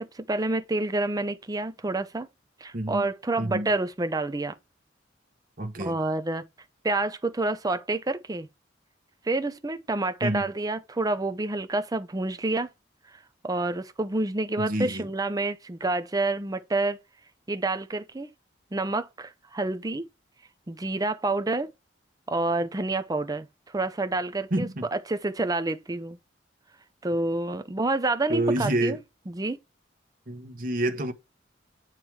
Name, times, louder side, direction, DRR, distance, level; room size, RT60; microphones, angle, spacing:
voice 1, 0.0-2.3 2.6-4.6 5.8-6.4 6.8-8.5 9.2-12.7 13.1-17.0 17.5-18.3 18.7-20.1 20.7-21.7 22.3-26.2 27.0-29.0 29.3-29.6, right 2 dB, 20° right, 0.5 m, -28 dB
voice 2, 2.7-3.1 3.4-3.7 5.6-6.0 10.2-10.5 14.6-15.1 24.5-24.8 28.3-29.0 30.3-31.1, right 1 dB, 50° right, 1.3 m, -28 dB
9.0 x 3.1 x 4.7 m
head